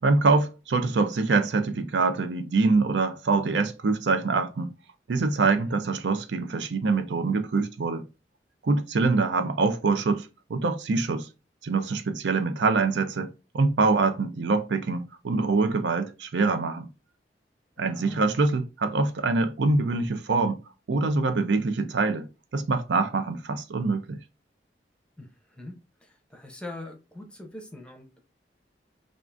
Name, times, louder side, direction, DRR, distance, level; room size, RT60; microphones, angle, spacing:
voice 1, 0.0-4.7 5.1-8.0 8.6-11.3 11.6-16.9 17.8-20.6 20.9-22.3 22.5-24.2, right 3 dB, 85° right, 0.5 m, -24 dB
voice 2, 5.4-5.8 17.8-18.4 25.2-25.7 26.0-28.2, left 2 dB, 5° left, 0.6 m, -42 dB
3.6 x 2.4 x 2.5 m
head